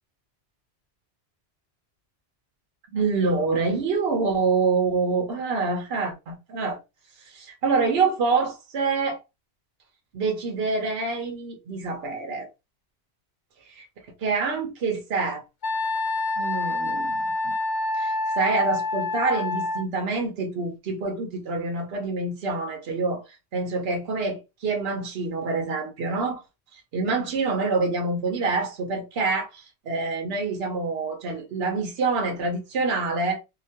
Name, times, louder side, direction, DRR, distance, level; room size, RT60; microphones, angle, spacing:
voice 1, 2.9-6.8 7.2-9.2 10.1-12.5 13.8-13.9 14.2-15.4 16.4-17.5 17.9-26.4 26.7-33.4, right 4 dB, 70° right, 0.9 m, -26 dB
Wind instrument woodwind instrument, 15.6-19.8, left 2 dB, 55° left, 0.5 m, -27 dB
2.9 x 2.1 x 2.7 m
omnidirectional pair, 1.1 m